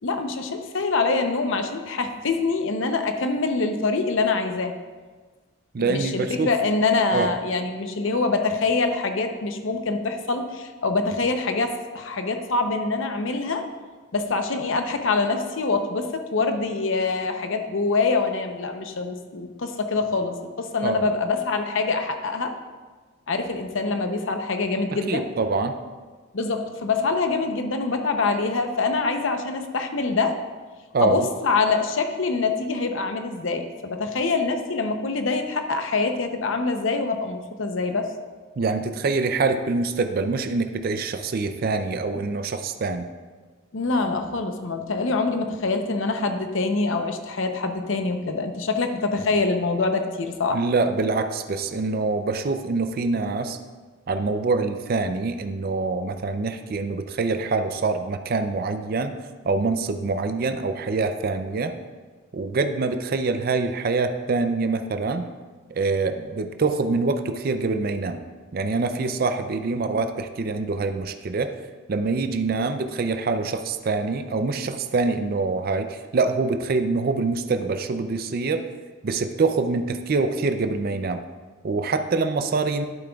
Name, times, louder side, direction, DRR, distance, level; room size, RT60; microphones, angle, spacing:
voice 1, 0.0-4.7 5.8-13.6 14.1-22.5 23.3-25.3 26.3-30.4 31.0-38.1 43.7-50.6, left 3 dB, 65° left, 6 dB, 0.7 m, -25 dB
voice 2, 5.7-6.5 7.1-7.3 20.8-21.1 25.1-25.8 30.9-31.3 38.6-43.1 50.5-53.6 54.1-59.1 59.4-61.8 62.3-65.3 65.7-68.2 68.5-71.6 71.9-78.7 79.0-81.2 81.6-82.8, right 3 dB, 45° right, 8 dB, 0.4 m, -25 dB
11.0 x 8.8 x 2.3 m, 1.4 s
head